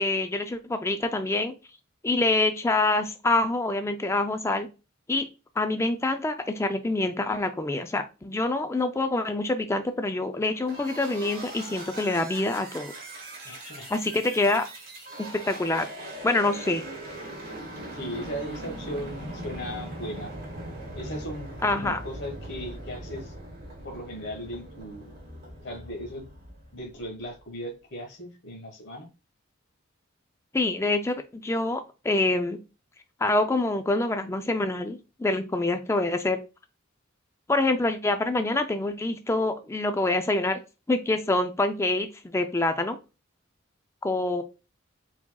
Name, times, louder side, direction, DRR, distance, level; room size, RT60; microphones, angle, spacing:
voice 1, 0.0-1.5 2.0-4.7 5.1-5.2 5.6-12.9 13.9-14.6 15.3-15.9 16.2-16.8 21.6-22.0 30.5-32.6 33.2-36.4 37.5-40.6 40.9-43.0 44.0-44.4, left 2 dB, 15° left, 7 dB, 0.3 m, -26 dB
sound 1, 10.7-27.3, right 1 dB, 45° right, 1.6 m, -40 dB
voice 2, 13.4-13.9 17.9-20.3 20.9-23.3 23.8-25.1 25.6-26.2 26.7-29.1, equal, 55° left, 3 dB, 1.4 m, -37 dB
4.6 x 4.1 x 2.3 m, 0.29 s
head